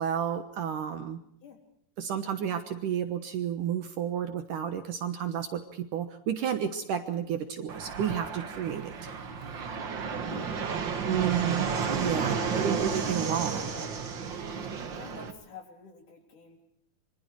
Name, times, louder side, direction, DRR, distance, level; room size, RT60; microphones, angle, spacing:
voice 1, 0.0-1.2 2.0-8.9 11.0-13.7, right 9 dB, 65° right, 8 dB, 2.5 m, -31 dB
Fixed-wing aircraft airplane, 7.7-15.3, right 5 dB, 50° right, 1.5 m, -32 dB
voice 2, 10.3-11.4 12.3-12.7 13.5-13.9 14.9-16.6, left 4 dB, 55° left, 4 dB, 4.7 m, -48 dB
26.5 x 24.0 x 4.6 m, 0.69 s
omnidirectional pair, 4.6 m